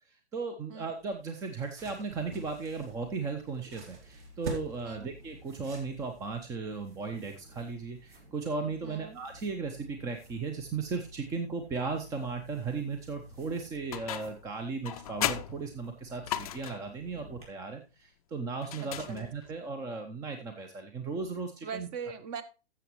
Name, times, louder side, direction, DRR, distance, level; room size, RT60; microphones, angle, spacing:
voice 1, 0.1-21.9, right 4 dB, 10° right, 6 dB, 0.6 m, -36 dB
sound 1, 1.0-6.4, right 2 dB, 45° right, 2.4 m, -46 dB
sound 2, 2.1-17.4, left 1 dB, 60° right, 4.6 m, -53 dB
voice 2, 8.8-9.2 18.8-19.3 21.6-22.4, right 6 dB, 30° right, 13 dB, 1.0 m, -41 dB
sound 3, 13.9-14.5 14.8-16.9 18.6-19.6, left 12 dB, 35° left, 0.5 m, -36 dB
13.5 x 7.2 x 3.0 m, 0.30 s
figure-of-eight pair, 115°, 32 cm